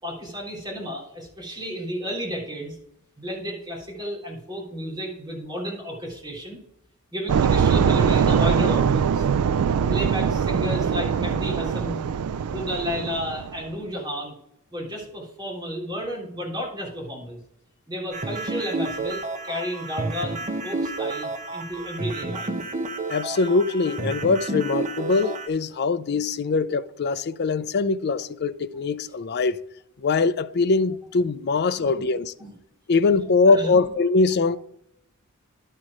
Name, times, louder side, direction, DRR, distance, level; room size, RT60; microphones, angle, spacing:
voice 1, 0.0-2.8 3.2-6.6 7.1-9.3 9.9-12.0 12.5-14.3 14.7-17.4 17.9-22.5 31.9-32.0 32.4-32.5 33.5-33.8, equal, 20° right, 3.4 m, -32 dB
sound 1, 7.3-13.6, right 7 dB, 80° right, 0.4 m, -22 dB
sound 2, 18.1-25.5, right 2 dB, 35° right, 0.8 m, -30 dB
voice 2, 23.1-29.6 30.0-32.3 32.9-34.6, left 4 dB, 50° left, 0.5 m, -22 dB
11.5 x 4.5 x 4.9 m
head